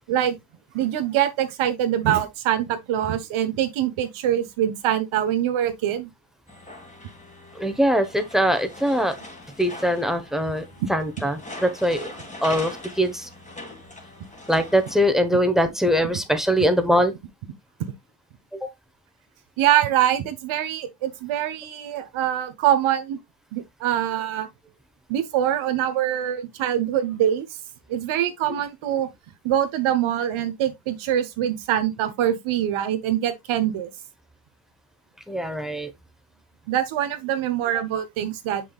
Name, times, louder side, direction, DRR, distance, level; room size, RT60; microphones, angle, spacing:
voice 1, 0.7-6.1 10.8-10.9 17.8-17.9 19.6-23.2 23.5-24.5 25.1-27.5 27.9-29.1 29.4-33.9 36.7-38.6, right 11 dB, 85° right, 1.3 m, -24 dB
sound 1, 6.5-15.1, left 1 dB, 15° left, 2.0 m, -41 dB
voice 2, 7.5-9.2 9.6-12.1 12.4-13.3 14.5-17.1 18.5-18.7 35.3-35.9, equal, ahead, 1.1 m, -22 dB
6.8 x 6.0 x 2.4 m
cardioid pair, 100°, 47 cm